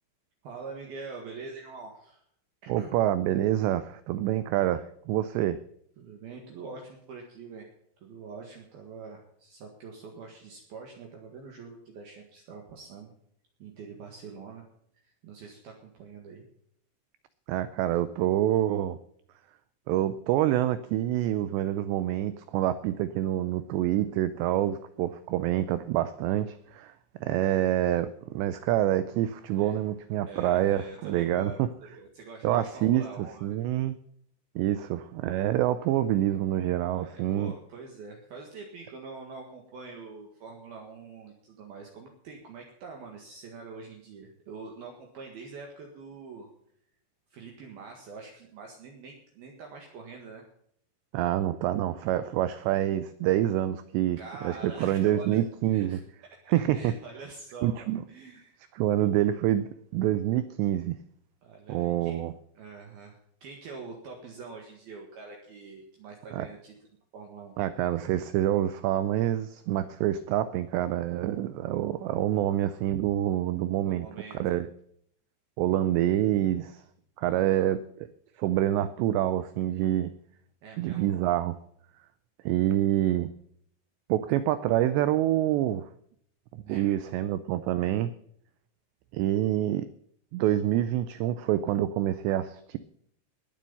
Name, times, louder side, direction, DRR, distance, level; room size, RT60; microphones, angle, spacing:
voice 1, 0.4-2.2 2.6-2.9 6.0-7.7 8.0-13.1 13.6-14.7 15.0-16.4 27.4-27.6 29.5-29.8 30.3-33.6 36.9-46.5 47.3-50.5 54.2-55.4 55.7-56.0 56.4-58.6 61.4-62.2 62.5-66.7 67.1-67.6 73.9-74.6 77.2-77.8 80.6-81.1 86.7-87.2, right 4 dB, 60° right, 1 dB, 3.1 m, -45 dB
voice 2, 2.7-5.6 17.5-19.0 19.9-26.9 27.2-31.7 32.4-34.0 34.6-37.5 51.1-54.2 54.4-56.0 56.5-56.9 57.6-58.0 58.8-61.0 61.7-62.3 66.3-66.5 67.6-74.1 74.4-74.7 75.6-76.8 77.2-77.8 78.4-80.1 80.8-81.6 82.5-83.3 84.1-85.9 86.5-88.1 89.1-89.9 90.3-92.8, right 12 dB, 90° right, 14 dB, 2.4 m, -27 dB
20.0 x 7.6 x 5.5 m, 0.66 s
omnidirectional pair, 5.7 m